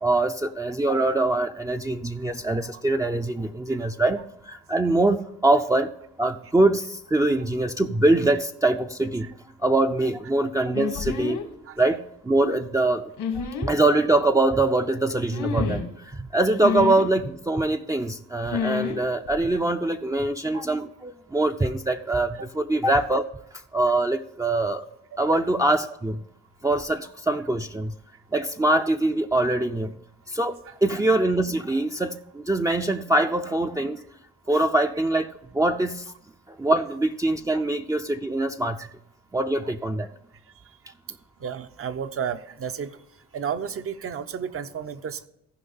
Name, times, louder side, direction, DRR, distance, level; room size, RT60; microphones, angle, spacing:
voice 1, 0.0-5.9 6.2-9.3 9.6-11.4 11.8-13.1 13.3-23.2 23.7-24.8 25.2-26.2 26.6-27.9 28.3-29.9 30.3-34.0 34.5-36.0 36.5-38.8 39.3-40.1, right 2 dB, 10° right, 3 dB, 0.5 m, -23 dB
sound 1, 10.7-11.5 13.2-13.7 15.3-15.9 16.6-17.1 18.5-19.0 19.3-19.5, left 7 dB, 85° left, 1.8 m, -29 dB
voice 2, 41.4-43.0 43.3-45.3, right 7 dB, 50° right, 10 dB, 0.7 m, -32 dB
14.5 x 5.2 x 5.5 m, 0.82 s
cardioid pair, 90°, 30 cm